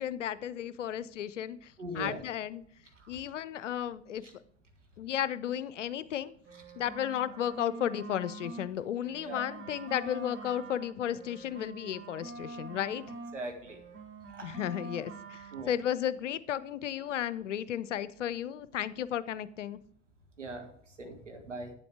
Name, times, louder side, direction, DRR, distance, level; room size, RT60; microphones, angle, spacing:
voice 1, 0.0-2.6 3.1-4.2 5.0-6.3 6.8-13.0 14.4-19.8, left 10 dB, 85° left, 16 dB, 0.5 m, -34 dB
voice 2, 1.8-2.2 2.9-3.2 4.2-4.3 9.2-9.5 13.3-13.8 14.3-14.5 15.5-15.7 20.4-21.7, right 1 dB, 90° right, 3 dB, 1.6 m, -41 dB
sound 1, 6.4-8.7 9.0-13.4 13.7-15.7, right 3 dB, 35° right, 1.4 m, -45 dB
8.9 x 7.7 x 4.6 m, 0.62 s
figure-of-eight pair, 75°, 36 cm